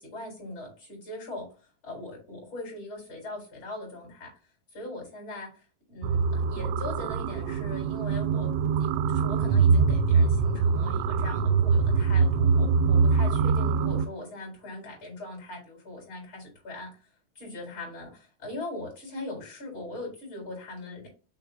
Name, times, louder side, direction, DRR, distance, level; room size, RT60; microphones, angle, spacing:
voice 1, 0.0-1.5 1.8-4.3 4.7-16.9 17.3-21.1, left 2 dB, 30° left, -1 dB, 4.4 m, -40 dB
sound 1, 6.0-14.1, right 5 dB, 85° right, 2.7 m, -23 dB
7.0 x 4.3 x 4.0 m, 0.34 s
omnidirectional pair, 4.9 m